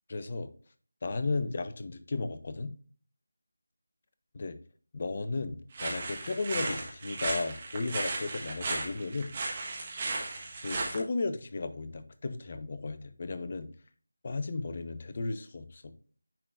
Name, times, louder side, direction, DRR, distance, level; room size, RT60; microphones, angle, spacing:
voice 1, 0.1-0.5 1.0-2.7 4.3-4.6 4.9-9.3 10.6-13.7 14.2-15.9, left 3 dB, 35° left, 11 dB, 0.6 m, -34 dB
sound 1, 5.7-11.0, right 2 dB, 30° right, 1.3 m, -35 dB
9.8 x 3.9 x 2.5 m, 0.42 s
figure-of-eight pair, 165°, 0 cm